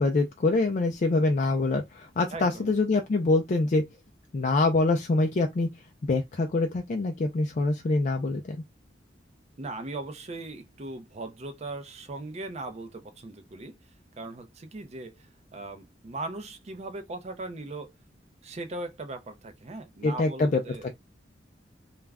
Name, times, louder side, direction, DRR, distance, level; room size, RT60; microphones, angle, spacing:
voice 1, 0.0-3.8 4.3-5.7 6.1-8.6 20.0-20.6, left 2 dB, 40° left, 0.4 m, -25 dB
voice 2, 2.3-2.7 9.6-13.8 14.2-17.9 18.4-20.9, right 2 dB, 40° right, 0.5 m, -39 dB
2.4 x 2.1 x 3.4 m
head